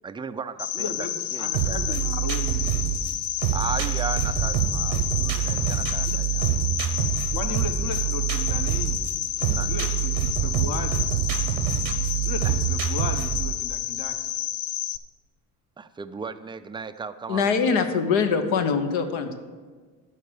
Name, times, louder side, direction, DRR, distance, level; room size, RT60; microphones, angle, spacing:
voice 1, 0.0-1.0 1.3-2.0 3.5-6.5 9.4-9.7 12.4-12.5 15.8-17.9, right 5 dB, 10° right, 10 dB, 0.4 m, -36 dB
Cricket, 0.6-15.0, left 12 dB, 85° left, 0.6 m, -30 dB
voice 2, 0.7-1.1 1.4-2.8 6.1-6.2 7.3-9.0 9.7-11.0 12.2-14.2, left 4 dB, 45° left, 5 dB, 1.1 m, -35 dB
sound 1, 1.5-13.5, right 11 dB, 85° right, 1.0 m, -26 dB
voice 3, 17.3-19.3, left 5 dB, 70° left, 7 dB, 1.2 m, -23 dB
12.5 x 4.7 x 6.4 m, 1.5 s
hypercardioid pair, 70°, 48 cm